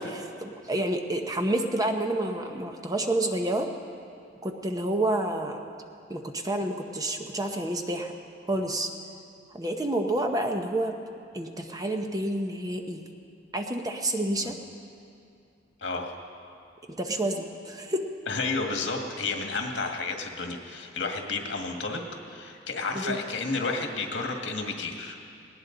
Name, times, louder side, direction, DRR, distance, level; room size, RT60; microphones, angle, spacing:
voice 1, 0.0-3.7 4.4-5.6 6.1-8.1 8.5-8.9 9.5-11.0 11.3-13.0 13.5-14.5 17.0-18.0 22.9-23.2, right 1 dB, 20° right, 4 dB, 0.9 m, -29 dB
voice 2, 15.8-16.1 18.3-22.0 22.3-25.2, left 3 dB, 70° left, 2 dB, 1.8 m, -31 dB
19.5 x 18.0 x 3.9 m, 2.5 s
head